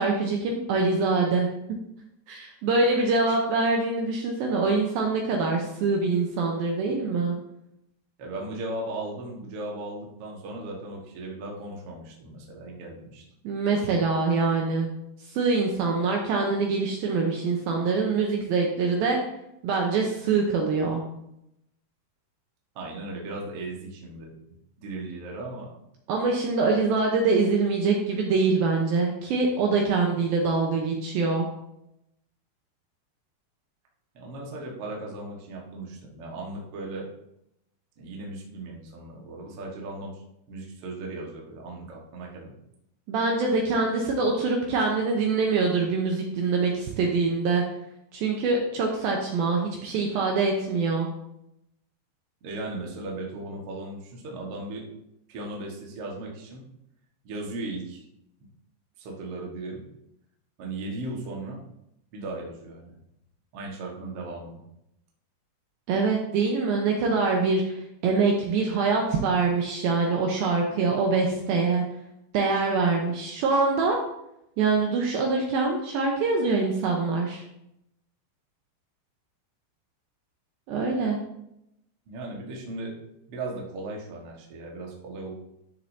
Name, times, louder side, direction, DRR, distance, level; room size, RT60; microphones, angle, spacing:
voice 1, 0.0-1.5 2.3-7.4 13.4-14.9 15.3-19.2 19.6-21.0 26.1-31.5 43.1-47.6 48.1-51.1 65.9-71.8 72.3-74.0 74.6-77.4 80.7-81.2, right 4 dB, 75° right, 1 dB, 2.3 m, -24 dB
voice 2, 8.2-13.2 22.8-24.3 24.8-25.7 34.1-37.1 38.0-40.2 40.5-42.5 52.4-54.8 55.3-56.6 57.2-58.1 59.0-59.9 60.6-61.6 62.1-62.9 63.5-64.6 82.1-82.9 83.3-85.3, right 2 dB, 60° right, -1 dB, 1.6 m, -37 dB
12.5 x 6.7 x 2.8 m, 0.81 s
omnidirectional pair, 5.1 m